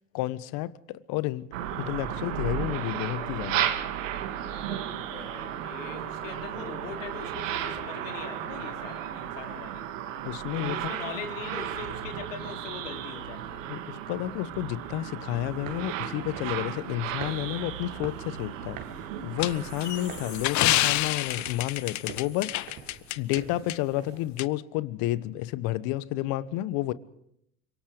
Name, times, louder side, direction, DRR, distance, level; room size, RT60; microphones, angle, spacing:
voice 1, 0.1-3.7 10.2-10.8 13.7-18.8 19.2-22.6 23.2-26.9, left 15 dB, 65° left, 1.3 m, -31 dB
sound 1, 1.5-20.5, right 10 dB, 85° right, 2.3 m, -34 dB
voice 2, 4.3-9.8 10.5-13.7, left 6 dB, 85° left, 4.1 m, -41 dB
sound 2, 15.5-24.3, right 8 dB, 65° right, 3.9 m, -47 dB
sound 3, 19.4-23.4 23.7-23.8 24.4-24.5, left 15 dB, 50° left, 1.0 m, -28 dB
26.0 x 23.5 x 5.1 m
hypercardioid pair, 85°, 38 cm